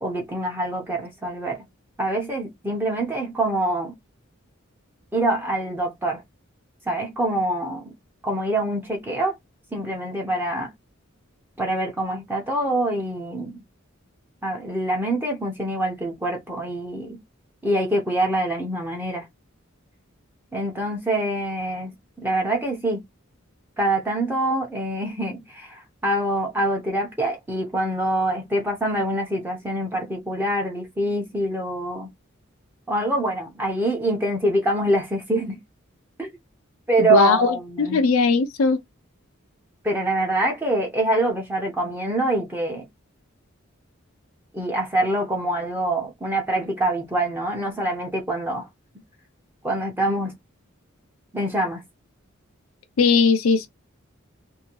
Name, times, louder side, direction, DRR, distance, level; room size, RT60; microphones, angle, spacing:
voice 1, 0.0-1.6 2.0-3.9 5.1-6.2 6.9-7.9 8.2-9.3 9.7-10.7 11.6-13.6 14.4-17.2 17.6-19.3 20.5-21.9 22.2-23.0 23.8-32.1 32.9-35.6 36.2-36.4 36.9-38.0 39.8-42.9 44.5-48.7 49.6-50.3 51.3-51.8, right 1 dB, 10° right, 0.7 m, -25 dB
voice 2, 37.0-38.8 53.0-53.7, left 4 dB, 85° left, 0.5 m, -19 dB
2.7 x 2.7 x 2.9 m
head